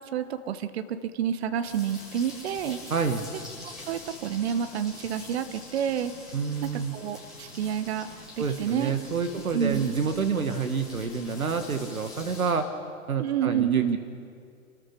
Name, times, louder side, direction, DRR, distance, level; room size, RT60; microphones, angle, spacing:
voice 1, 0.1-2.8 3.9-6.1 6.6-8.1 8.4-8.9 9.3-9.9 13.2-14.0, right 9 dB, 45° right, 11 dB, 1.4 m, -29 dB
sound 1, 1.6-12.5, left 2 dB, ahead, 7.7 m, -45 dB
voice 2, 2.9-3.3 6.3-6.9 8.4-12.7 13.1-14.0, right 5 dB, 75° right, 7 dB, 1.8 m, -28 dB
29.0 x 13.5 x 6.7 m, 2.3 s
figure-of-eight pair, 115°, 42 cm